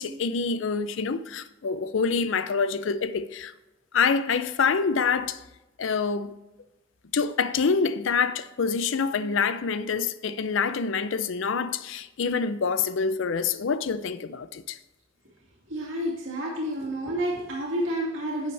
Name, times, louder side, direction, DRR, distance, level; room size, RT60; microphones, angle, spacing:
voice 1, 0.0-3.5 3.9-5.4 5.8-6.3 7.1-14.8, left 5 dB, 75° left, 0.5 m, -26 dB
voice 2, 15.7-18.5, equal, 80° right, 2.2 m, -29 dB
11.0 x 8.1 x 3.3 m
head